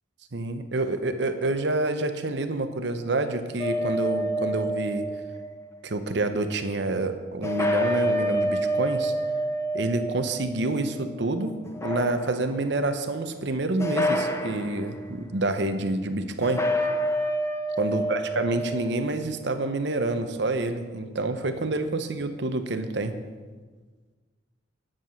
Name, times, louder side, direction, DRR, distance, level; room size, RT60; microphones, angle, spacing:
voice 1, 0.3-5.0 5.8-9.1 9.7-11.6 11.8-16.6 17.8-23.1, right 2 dB, 60° right, 8 dB, 0.8 m, -28 dB
sound 1, 3.6-5.6 7.4-11.2 11.6-12.6 13.8-14.9 16.4-19.1, equal, 15° left, 0.6 m, -28 dB
9.8 x 7.5 x 6.3 m, 1.4 s
head